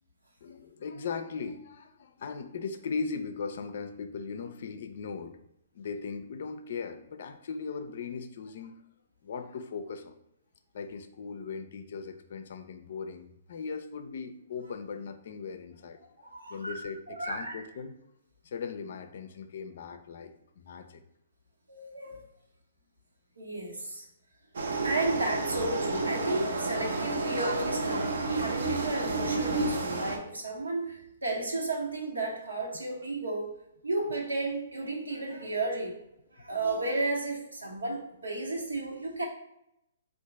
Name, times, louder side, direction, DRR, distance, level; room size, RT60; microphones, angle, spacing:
voice 1, 0.4-5.4 5.7-8.7 9.2-10.1 10.7-16.1 16.5-17.9 18.4-21.0, left 5 dB, 60° left, 8 dB, 0.5 m, -38 dB
voice 2, 16.2-16.8 17.1-17.6 21.7-22.2 23.4-24.0 24.8-33.6 33.8-35.9 36.3-39.2, right 2 dB, 85° right, -1 dB, 1.2 m, -33 dB
sound 1, 24.5-30.2, right 3 dB, 70° right, 0.7 m, -30 dB
3.8 x 2.5 x 4.7 m, 0.81 s
hypercardioid pair, 125°, 0 cm